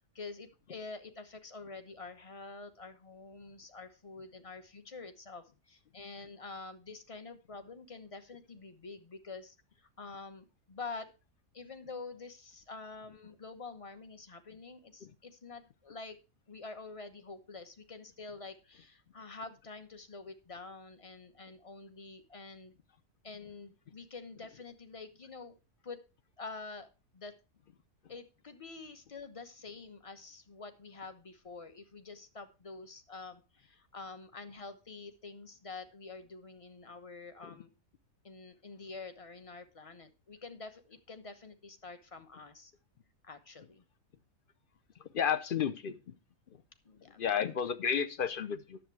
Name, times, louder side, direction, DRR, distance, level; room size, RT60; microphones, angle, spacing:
voice 1, 0.1-11.1 11.5-16.2 16.5-22.7 23.2-25.5 25.8-26.0 26.4-27.3 28.1-37.7 38.2-42.7 43.2-43.8 46.8-47.2, left 4 dB, 25° left, 9 dB, 1.0 m, -47 dB
voice 2, 45.1-46.1 47.2-48.8, left 8 dB, 50° left, 11 dB, 0.7 m, -32 dB
10.5 x 7.5 x 4.7 m, 0.31 s
omnidirectional pair, 1.5 m